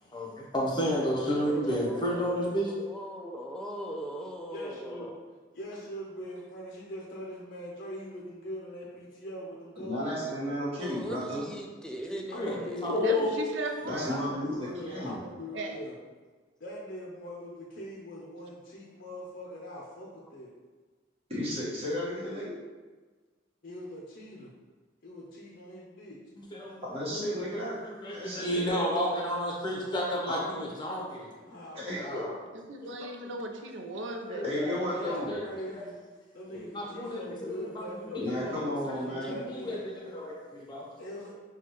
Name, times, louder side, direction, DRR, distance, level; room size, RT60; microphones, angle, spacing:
voice 1, 0.1-2.7 12.3-12.6 12.8-13.4 26.4-26.7 27.1-27.5 27.8-31.3 31.9-32.3 34.2-35.8 36.5-37.9 38.3-38.5 38.8-38.9 39.3-40.8, left 1 dB, 25° left, -3 dB, 0.8 m, -32 dB
voice 2, 0.8-2.6 4.5-5.1 5.6-10.6 12.3-13.3 13.9-16.0 16.6-20.5 23.6-24.5 25.0-26.2 31.4-31.9 34.9-35.9 36.3-38.6 39.0-39.8 41.0-41.3, equal, 50° left, -3 dB, 0.6 m, -42 dB
voice 3, 1.3-5.2 10.7-12.9 39.2-39.3, equal, 5° left, 1 dB, 0.3 m, -40 dB
voice 4, 9.8-11.4 13.8-15.2 21.3-22.6 26.8-27.8 28.1-28.8 30.3-30.4 31.7-32.2 34.4-35.3 38.1-39.4, left 1 dB, 30° right, -8 dB, 1.4 m, -33 dB
voice 5, 13.0-14.2 15.5-15.8 32.7-34.8, right 2 dB, 75° right, 3 dB, 0.5 m, -37 dB
6.1 x 2.3 x 3.0 m, 1.3 s
head